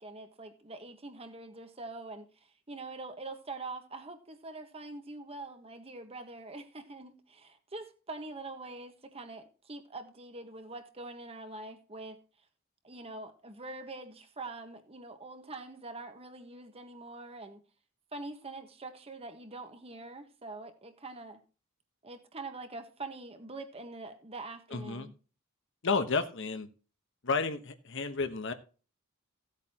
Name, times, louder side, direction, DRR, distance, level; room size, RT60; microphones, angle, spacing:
voice 1, 0.0-12.2 12.8-17.6 18.1-21.4 22.0-25.1, right 2 dB, 30° right, 1.4 m, -44 dB
voice 2, 24.7-25.1 25.8-26.7 27.2-28.5, left 4 dB, 60° left, 1.1 m, -31 dB
16.0 x 8.3 x 2.9 m
head